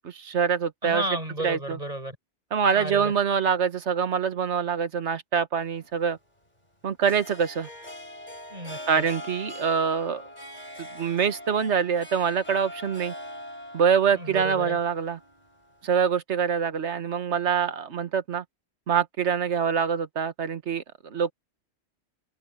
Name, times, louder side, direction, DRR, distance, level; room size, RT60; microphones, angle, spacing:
voice 1, 0.0-1.0 1.4-1.8 2.5-6.2 6.8-7.7 8.9-10.2 10.8-13.1 13.7-15.2 15.8-18.4 18.9-21.3, right 7 dB, 80° right, 1.5 m, -25 dB
voice 2, 0.8-2.2 2.7-3.1 8.5-9.1 14.1-14.8, right 1 dB, 35° right, 7.4 m, -33 dB
Harp, 5.6-16.1, left 1 dB, 35° left, 7.7 m, -42 dB
omnidirectional pair, 1.2 m